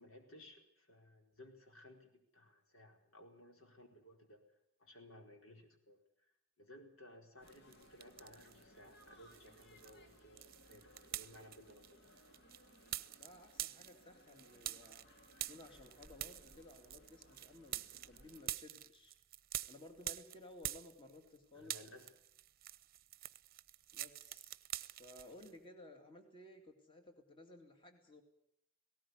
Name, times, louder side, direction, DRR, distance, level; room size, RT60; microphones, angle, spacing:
voice 1, 0.0-12.0 21.5-22.2, left 1 dB, 80° left, 3 dB, 4.5 m, -59 dB
sound 1, 7.4-18.6, equal, 55° left, 2.3 m, -64 dB
sound 2, 7.5-8.6 9.0-21.4 21.6-25.5, right 13 dB, 45° right, 0.8 m, -47 dB
voice 2, 13.2-15.1 15.5-19.2 19.7-21.9 23.9-24.5 24.9-28.2, left 1 dB, 25° left, 5 dB, 2.4 m, -57 dB
18.5 x 18.0 x 9.8 m, 0.73 s
head